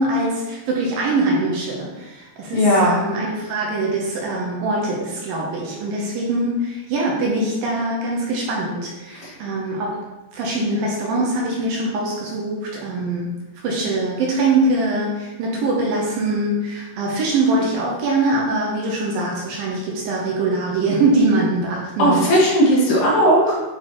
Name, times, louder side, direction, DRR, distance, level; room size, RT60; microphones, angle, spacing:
voice 1, 0.0-10.0 10.3-13.3 13.6-22.3, right 2 dB, 75° right, -3 dB, 2.1 m, -22 dB
voice 2, 2.5-3.0 9.1-9.3 22.0-23.6, equal, 65° left, -6 dB, 3.6 m, -16 dB
8.8 x 4.0 x 3.1 m, 1.1 s
omnidirectional pair, 5.3 m